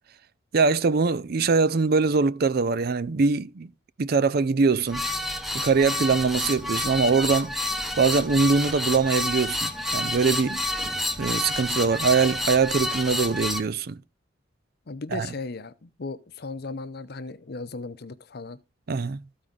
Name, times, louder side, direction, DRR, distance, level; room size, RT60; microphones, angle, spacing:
voice 1, 0.5-3.7 4.0-5.1 5.5-7.5 8.0-10.6 11.2-14.0 15.1-15.3 18.9-19.2, right 4 dB, 55° right, 0.5 m, -22 dB
sound 1, 4.9-13.6, left 1 dB, ahead, 1.0 m, -29 dB
voice 2, 14.9-18.6, left 3 dB, 55° left, 0.7 m, -36 dB
14.0 x 4.8 x 3.9 m
head